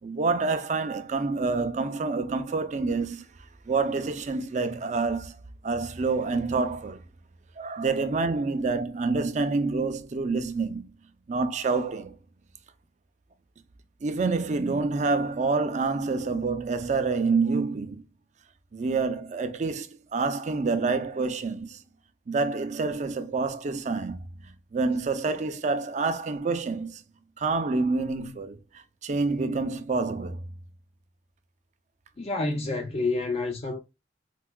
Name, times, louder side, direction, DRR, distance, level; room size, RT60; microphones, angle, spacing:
voice 1, 0.0-3.2 3.7-5.4 5.6-7.0 7.6-10.8 11.3-12.2 14.0-18.1 18.7-21.8 22.3-24.2 24.7-27.0 27.4-30.4, right 4 dB, 40° right, 0.4 m, -27 dB
voice 2, 32.2-33.8, left 3 dB, 35° left, 0.4 m, -28 dB
4.5 x 2.2 x 2.2 m
head